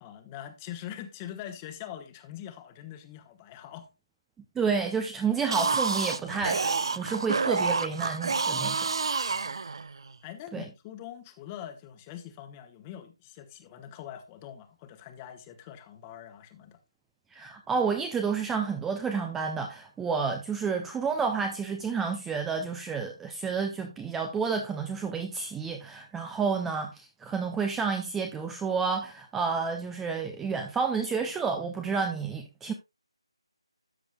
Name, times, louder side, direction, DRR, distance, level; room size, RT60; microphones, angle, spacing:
voice 1, 0.0-3.9 9.3-9.6 10.2-16.8, left 11 dB, 20° left, 1.1 m, -43 dB
voice 2, 4.6-8.9 10.5-10.6 17.3-32.7, right 5 dB, 5° right, 0.5 m, -30 dB
sound 1, 5.4-10.1, right 4 dB, 55° right, 0.6 m, -29 dB
13.0 x 7.6 x 2.2 m
figure-of-eight pair, 155°, 3 cm